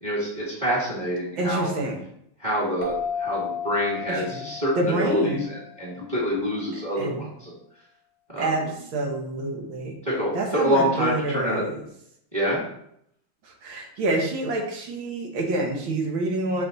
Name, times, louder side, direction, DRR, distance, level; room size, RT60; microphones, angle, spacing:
voice 1, 0.0-1.7 2.4-7.5 8.3-8.7 10.0-11.6 12.3-12.6, equal, 15° right, -7 dB, 1.7 m, -26 dB
voice 2, 1.4-2.0 4.1-4.4 4.8-5.5 7.0-7.3 8.4-9.9 10.3-11.8 13.4-16.6, right 2 dB, 70° right, 1 dB, 1.8 m, -27 dB
sound 1, 2.8-6.1, left 6 dB, 50° left, 1.0 m, -33 dB
6.1 x 4.2 x 3.9 m, 0.73 s
omnidirectional pair, 2.3 m